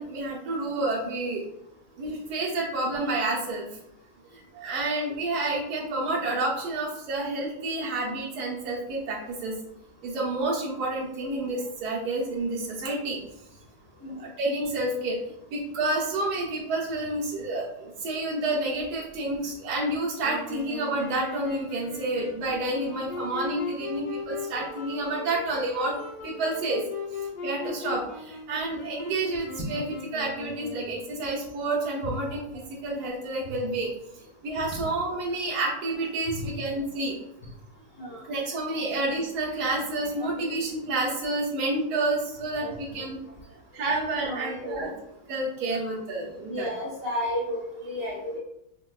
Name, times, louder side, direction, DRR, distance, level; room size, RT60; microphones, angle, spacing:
voice 1, 0.0-1.4 2.0-3.7 4.3-9.6 10.0-13.2 14.0-15.2 15.5-26.0 26.2-26.8 27.1-37.2 38.3-43.2 43.7-44.9 45.3-46.7, right 2 dB, 70° right, -4 dB, 1.3 m, -29 dB
Wind instrument woodwind instrument, 20.2-31.3, left 4 dB, 80° left, 1.4 m, -38 dB
voice 2, 42.6-43.0 44.2-44.9 46.5-48.4, left 1 dB, 10° left, -7 dB, 0.8 m, -33 dB
5.0 x 2.2 x 2.3 m, 0.79 s
omnidirectional pair, 1.9 m